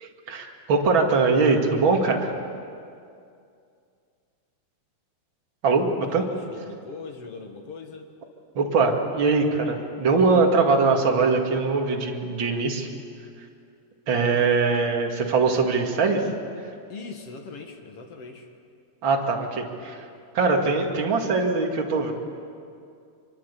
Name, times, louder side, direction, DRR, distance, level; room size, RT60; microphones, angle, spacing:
voice 1, 0.0-2.3 5.6-6.2 8.5-12.9 13.4-13.5 14.1-16.3 19.0-20.1 20.3-22.1, right 4 dB, 35° right, 1 dB, 2.4 m, -22 dB
voice 2, 5.9-8.1 16.9-18.5, left 4 dB, 50° left, 4 dB, 2.0 m, -40 dB
25.0 x 23.5 x 8.3 m, 2.4 s
omnidirectional pair, 4.5 m